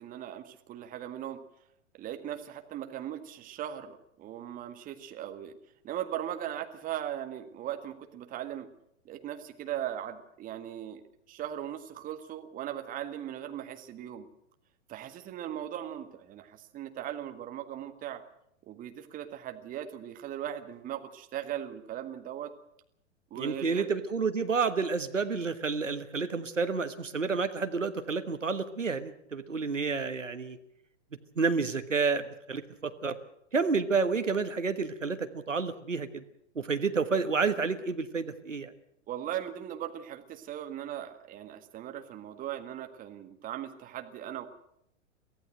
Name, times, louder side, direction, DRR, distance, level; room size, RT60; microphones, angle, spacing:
voice 1, 0.0-1.4 2.0-5.5 5.8-8.7 9.1-11.0 11.3-14.3 14.9-18.2 18.7-22.5 23.3-23.9 39.1-44.5, right 11 dB, 20° right, 7 dB, 1.7 m, -38 dB
voice 2, 23.3-30.6 31.4-33.2 33.5-36.2 36.5-38.7, right 4 dB, 80° right, 9 dB, 1.5 m, -30 dB
23.5 x 15.5 x 7.8 m, 0.75 s
figure-of-eight pair, 105°, 37 cm